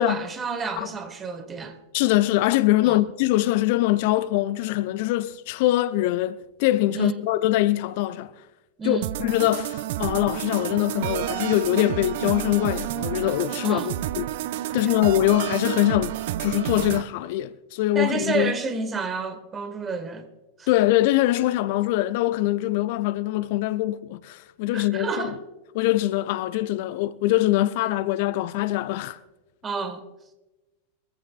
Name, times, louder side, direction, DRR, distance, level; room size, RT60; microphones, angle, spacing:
voice 1, 0.0-1.8 2.8-3.0 6.9-7.2 8.8-9.1 13.6-14.0 14.8-14.9 17.9-20.3 20.6-20.7 24.7-25.4 29.6-30.0, right 5 dB, 20° right, 1.6 m, -30 dB
voice 2, 1.9-8.3 8.8-14.3 14.7-18.5 20.7-25.3 25.7-29.2, left 16 dB, 50° left, 0.4 m, -23 dB
sound 1, 9.0-17.0, right 13 dB, 50° right, 0.6 m, -30 dB
23.5 x 15.0 x 2.4 m
figure-of-eight pair, 90°, 0 cm